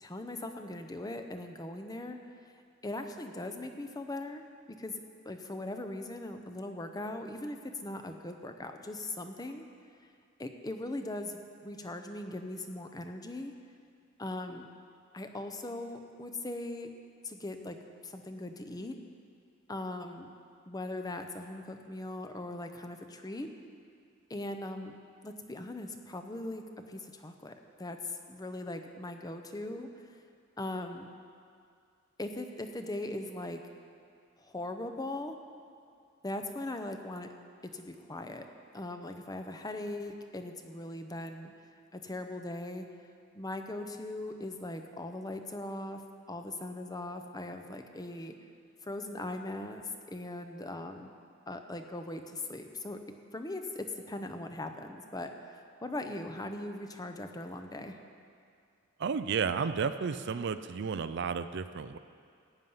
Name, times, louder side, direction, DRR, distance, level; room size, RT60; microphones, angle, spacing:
voice 1, 0.0-2.2 2.4-2.5 2.8-9.6 10.4-13.5 14.2-14.7 15.1-16.9 17.2-17.8 18.0-19.0 19.7-20.3 20.7-23.5 24.3-25.0 25.2-30.2 30.6-31.1 32.2-33.6 34.4-35.4 36.2-37.3 37.7-38.4 38.7-41.5 41.9-42.9 43.3-46.0 46.3-48.4 48.8-51.1 51.5-53.0 53.3-58.0, left 2 dB, 20° left, 6 dB, 0.7 m, -40 dB
voice 2, 59.0-62.0, right 6 dB, 55° right, 11 dB, 0.4 m, -32 dB
14.5 x 9.3 x 5.6 m, 2.3 s
head